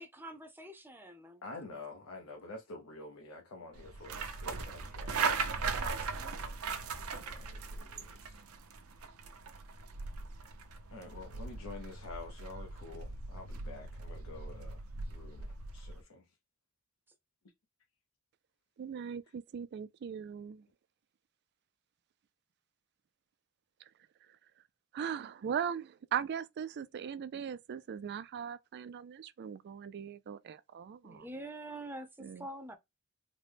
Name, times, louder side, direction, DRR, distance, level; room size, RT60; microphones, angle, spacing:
voice 1, 0.0-1.4 5.7-6.5 31.0-32.8, right 1 dB, 10° right, 0.6 m, -46 dB
voice 2, 1.4-5.2 7.1-8.4 10.9-14.8 15.1-16.2, left 3 dB, 75° left, 0.8 m, -48 dB
sound 1, 3.8-16.0, right 4 dB, 85° right, 0.7 m, -39 dB
voice 3, 18.8-20.7 23.8-23.9 24.3-24.4 24.9-31.3 32.2-32.5, right 8 dB, 50° right, 0.3 m, -39 dB
3.9 x 2.1 x 3.3 m
head